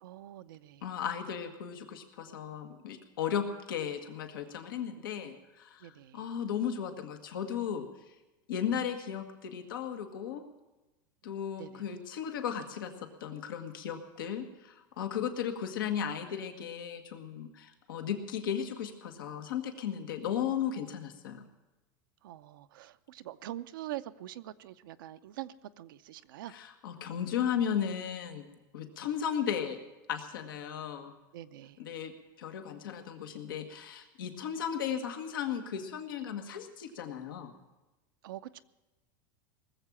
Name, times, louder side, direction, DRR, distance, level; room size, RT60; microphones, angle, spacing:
voice 1, 0.0-0.9 5.8-6.2 11.2-11.3 11.6-11.9 22.2-26.5 31.3-31.8 38.2-38.6, right 14 dB, 80° right, 10 dB, 0.6 m, -44 dB
voice 2, 0.8-8.1 8.5-10.4 11.2-21.4 26.5-29.8 30.1-31.1 31.8-32.1 32.4-37.6, left 8 dB, 85° left, 6 dB, 1.5 m, -35 dB
19.5 x 7.4 x 8.6 m, 1.1 s
supercardioid pair, 125°, 11 cm